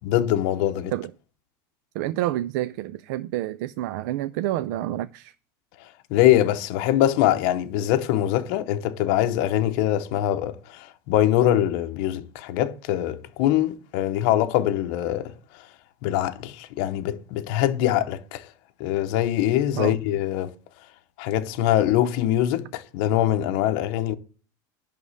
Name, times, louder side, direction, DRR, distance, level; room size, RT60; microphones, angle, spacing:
voice 1, 0.0-0.9 6.1-15.3 16.0-18.5 18.8-20.5 21.2-24.1, left 12 dB, 55° left, 0.8 m, -23 dB
voice 2, 1.9-5.3 19.8-20.0, right 14 dB, 60° right, 0.4 m, -28 dB
11.0 x 3.6 x 6.5 m
cardioid pair, 170°, 10 cm